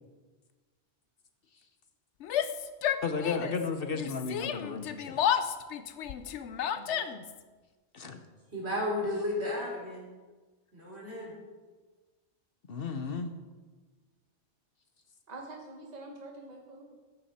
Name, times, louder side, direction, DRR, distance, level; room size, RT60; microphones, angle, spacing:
Yell, 2.2-3.7 3.9-7.4, left 9 dB, 90° left, 1.0 m, -32 dB
voice 1, 3.0-5.2 7.9-8.2 12.7-13.3, left 5 dB, 55° left, 7 dB, 1.0 m, -34 dB
voice 2, 6.7-7.1 15.3-16.9, right 2 dB, 35° right, 0 dB, 1.5 m, -46 dB
voice 3, 8.5-10.1 10.7-11.3, left 1 dB, 65° right, -3 dB, 4.0 m, -33 dB
13.5 x 9.5 x 4.3 m, 1.3 s
omnidirectional pair, 1.2 m